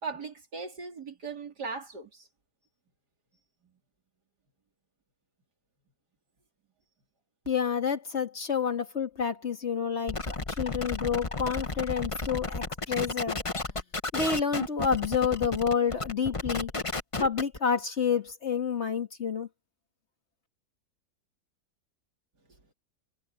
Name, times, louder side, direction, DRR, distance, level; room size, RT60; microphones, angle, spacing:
voice 1, 0.0-2.3, right 4 dB, 80° right, 4.0 m, -38 dB
voice 2, 7.5-13.4 14.1-16.7 17.2-19.5, left 6 dB, 45° left, 1.9 m, -29 dB
sound 1, 10.1-17.6, left 3 dB, 20° left, 1.2 m, -33 dB
omnidirectional pair, 1.7 m